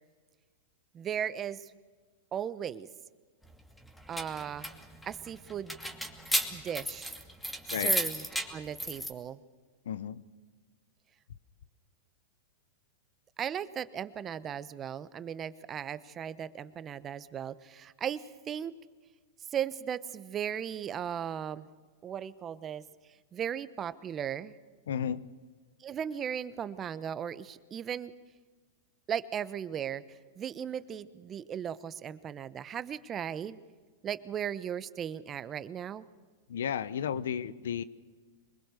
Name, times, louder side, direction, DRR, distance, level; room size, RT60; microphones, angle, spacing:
voice 1, 0.9-1.7 2.3-2.9 4.1-4.7 5.1-5.8 6.5-7.1 7.7-9.4 13.4-18.7 19.5-21.7 22.0-22.8 23.3-24.5 25.8-28.1 29.1-30.0 30.4-33.6 34.0-36.0, right 9 dB, 25° right, 15 dB, 1.0 m, -37 dB
sound 1, 3.8-9.1, equal, 5° left, 2.5 m, -34 dB
voice 2, 9.9-10.2 24.9-25.3 36.5-37.8, left 8 dB, 75° left, 17 dB, 0.9 m, -33 dB
24.0 x 21.5 x 6.8 m, 1.4 s
hypercardioid pair, 110°, 0 cm